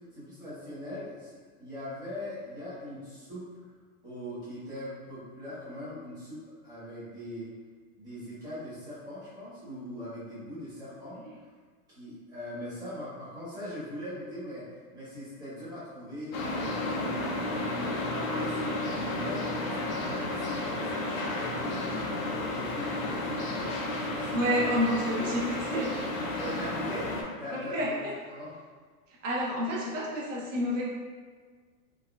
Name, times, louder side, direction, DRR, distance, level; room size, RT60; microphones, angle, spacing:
voice 1, 0.1-3.5 4.0-7.5 8.0-11.2 11.9-14.7 14.9-17.1 17.4-20.9 21.2-24.6 26.4-27.1 27.4-28.0 28.3-28.5, left 1 dB, 10° right, -12 dB, 0.7 m, -41 dB
sound 1, 16.3-27.2, left 2 dB, 60° left, 0.6 m, -32 dB
voice 2, 24.3-25.9 27.5-28.1 29.2-30.8, equal, 55° right, -4 dB, 0.9 m, -29 dB
3.5 x 2.3 x 2.2 m, 1.5 s
hypercardioid pair, 155°, 46 cm